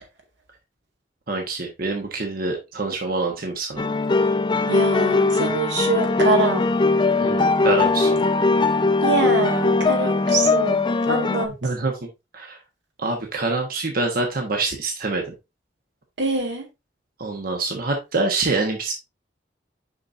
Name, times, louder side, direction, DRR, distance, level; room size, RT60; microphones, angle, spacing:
voice 1, 1.3-3.8 7.2-8.2 11.6-11.9 12.3-12.6 13.0-15.2 17.2-19.0, right 3 dB, 55° right, 1.2 m, -25 dB
sound 1, 3.8-11.5, left 3 dB, 25° left, 0.5 m, -20 dB
voice 2, 4.7-6.7 9.0-11.6 16.2-16.7, right 3 dB, 80° right, 1.8 m, -24 dB
6.5 x 5.6 x 2.6 m
head